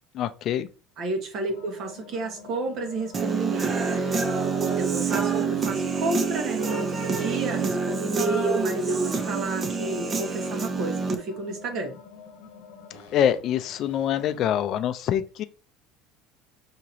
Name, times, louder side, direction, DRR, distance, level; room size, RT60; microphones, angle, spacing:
voice 1, 0.1-0.7 13.1-15.4, left 10 dB, 50° left, 0.5 m, -25 dB
voice 2, 1.0-4.2 4.6-11.9, right 3 dB, 55° right, 1.5 m, -31 dB
sound 1, 1.4-14.8, left 5 dB, 85° left, 1.1 m, -47 dB
Human voice / Guitar, 3.1-11.2, right 4 dB, 30° right, 0.7 m, -26 dB
6.0 x 2.9 x 2.8 m
supercardioid pair, 110°, 0 cm